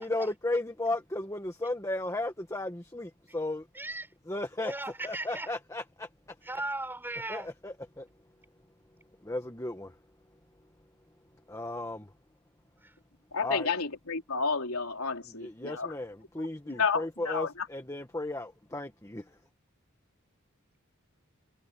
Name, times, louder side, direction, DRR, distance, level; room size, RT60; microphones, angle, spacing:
voice 1, 0.0-3.6 4.3-4.7 5.0-6.1 7.3-8.1 9.2-9.9 11.5-12.1 13.4-13.7 15.3-19.2, left 2 dB, 15° left, 1.5 m, -35 dB
voice 2, 3.7-4.1 4.6-5.5 6.4-7.5 12.8-12.9, right 2 dB, 10° right, 5.5 m, -37 dB
voice 3, 13.3-15.9 16.7-17.7, left 5 dB, 90° left, 3.4 m, -31 dB
head